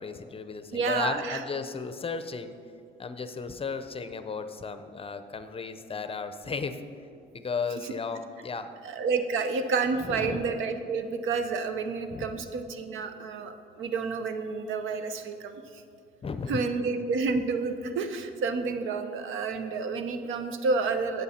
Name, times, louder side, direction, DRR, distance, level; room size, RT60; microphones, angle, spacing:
voice 1, 0.0-2.5 3.0-6.8 7.3-8.7 10.0-10.5 12.1-12.5 16.2-16.7, left 5 dB, 30° left, 10 dB, 0.6 m, -35 dB
voice 2, 0.7-1.4 8.8-15.8 16.5-21.2, right 4 dB, 80° right, 9 dB, 0.8 m, -30 dB
11.5 x 8.3 x 4.3 m, 2.4 s
cardioid pair, 90°, 20 cm